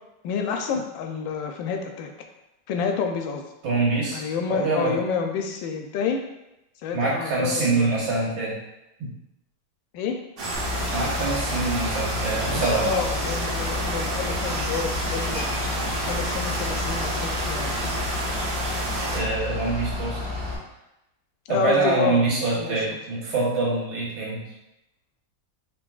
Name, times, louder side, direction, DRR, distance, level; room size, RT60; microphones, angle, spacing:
voice 1, 0.2-2.1 2.7-3.5 4.1-6.2 6.8-8.1 9.9-10.2 12.8-15.6 16.0-17.7 21.5-22.2 22.5-22.8, left 6 dB, 80° left, 4 dB, 1.3 m, -29 dB
voice 2, 3.6-5.0 6.9-8.6 9.0-9.1 10.9-12.9 19.1-20.2 21.5-24.5, right 3 dB, 85° right, -5 dB, 1.9 m, -25 dB
sound 1, 10.4-19.2, right 2 dB, 65° right, 1.5 m, -30 dB
Bus / Idling, 10.5-20.6, left 3 dB, 50° right, 1.3 m, -31 dB
sound 2, 12.3-13.1 14.4-14.5 14.8-16.9, equal, 20° right, 0.8 m, -36 dB
5.0 x 3.2 x 2.3 m, 0.91 s
omnidirectional pair, 2.1 m